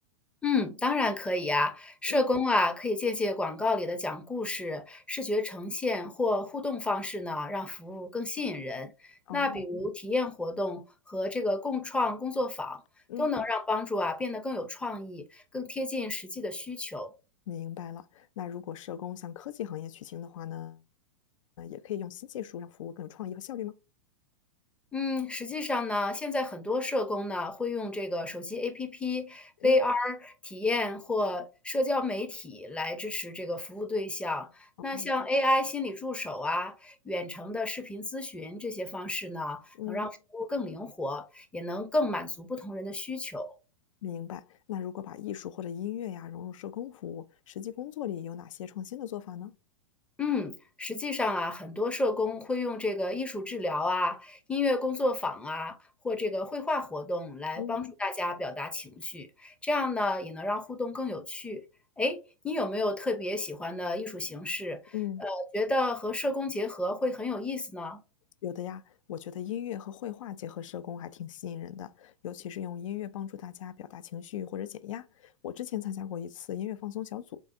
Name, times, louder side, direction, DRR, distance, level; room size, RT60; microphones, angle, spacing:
voice 1, 0.4-8.9 9.3-12.8 13.2-17.1 24.9-34.5 34.8-39.6 39.9-43.5 50.2-55.8 56.0-61.6 62.0-64.9 65.2-68.0, left 2 dB, 5° left, 0.5 m, -31 dB
voice 2, 9.3-9.7 13.1-13.3 17.5-20.8 21.6-23.7 29.6-29.8 34.8-35.1 39.8-40.1 44.0-49.5 57.6-57.8 64.9-65.2 68.4-68.8 69.1-77.4, left 10 dB, 75° left, 0.4 m, -38 dB
3.7 x 3.5 x 2.5 m
hypercardioid pair, 120°, 17 cm